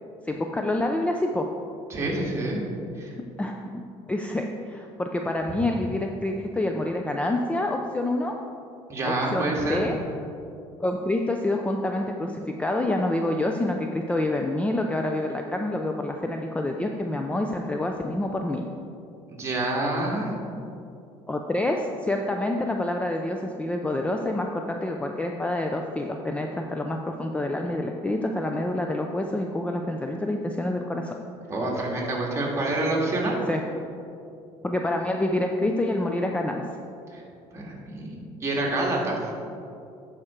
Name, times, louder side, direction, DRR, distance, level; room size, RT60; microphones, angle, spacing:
voice 1, 0.2-1.5 3.4-3.8 4.1-8.3 9.0-10.0 10.8-18.6 21.3-31.1 33.5-33.6 34.6-36.7, left 1 dB, 10° left, 3 dB, 0.5 m, -27 dB
voice 2, 1.9-2.6 3.0-3.2 8.9-9.9 19.3-20.4 31.5-33.4 37.1-37.2 37.5-38.1 38.4-39.3, right 2 dB, 25° right, -3 dB, 2.0 m, -27 dB
11.0 x 4.9 x 4.4 m, 2.6 s
cardioid pair, 105°, 12 cm